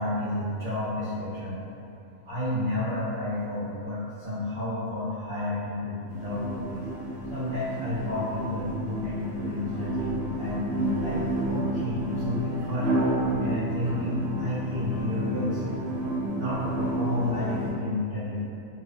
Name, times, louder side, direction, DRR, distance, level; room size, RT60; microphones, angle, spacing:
voice 1, 0.0-1.6 2.2-6.9 7.3-11.2 11.5-13.0 13.4-15.8 16.3-18.4, left 1 dB, 35° right, -15 dB, 0.5 m, -31 dB
sound 1, 6.1-17.7, right 1 dB, 65° right, 0.8 m, -30 dB
2.3 x 2.1 x 2.6 m, 2.7 s
omnidirectional pair, 1.3 m